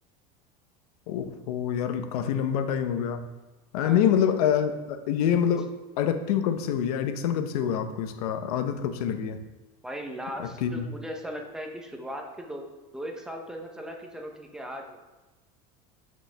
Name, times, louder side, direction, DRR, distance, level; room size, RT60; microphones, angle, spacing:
voice 1, 1.1-3.2 3.7-5.7 6.0-9.4 10.4-10.9, left 8 dB, 90° left, 8 dB, 0.9 m, -26 dB
voice 2, 3.8-4.1 9.8-12.6 12.9-15.0, equal, 5° right, 2 dB, 0.8 m, -38 dB
12.0 x 5.3 x 3.4 m, 1.1 s
cardioid pair, 170°, 19 cm